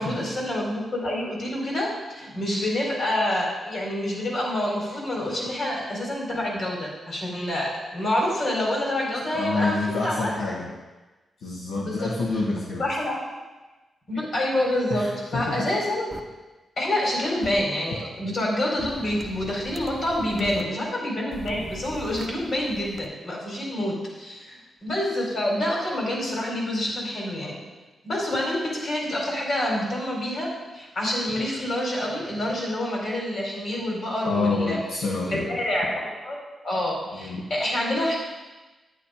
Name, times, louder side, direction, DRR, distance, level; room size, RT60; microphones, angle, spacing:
voice 1, 0.0-10.3 11.8-12.1 12.8-13.2 14.1-16.1 16.8-27.6 28.0-30.5 30.7-34.8 35.3-36.4 36.6-38.2, left 1 dB, 55° left, -2 dB, 4.4 m, -27 dB
voice 2, 9.3-10.7 11.4-12.9 14.9-15.7 20.4-20.6 34.2-35.5 37.1-37.4, left 3 dB, 85° left, -4 dB, 1.5 m, -27 dB
sound 1, 16.1-16.2 17.4-17.6 18.8-20.6 21.3-23.1, right 2 dB, 20° right, 1.0 m, -41 dB
10.0 x 9.0 x 5.1 m, 1.2 s
cardioid pair, 80°, 0 cm